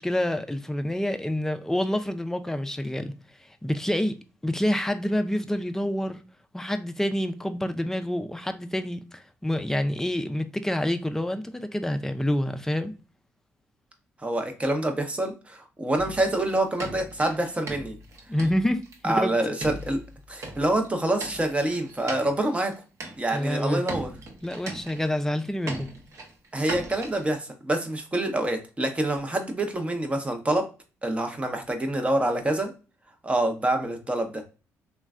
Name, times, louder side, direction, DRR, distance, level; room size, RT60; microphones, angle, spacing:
voice 1, 0.0-3.1 3.4-4.2 4.4-6.2 6.5-12.9 18.3-19.3 23.3-23.8 24.4-25.9, left 1 dB, 5° left, 0.4 m, -27 dB
voice 2, 14.2-17.9 19.0-20.0 20.3-22.7 23.2-24.1 26.5-30.7 31.0-32.7 33.2-34.4, right 1 dB, 20° right, 0.8 m, -26 dB
sound 1, 16.0-19.1 19.6-22.7 23.0-23.6 23.9-25.4 25.7-27.3, right 2 dB, 55° right, 0.8 m, -39 dB
3.1 x 2.2 x 2.3 m
supercardioid pair, 65°, 6 cm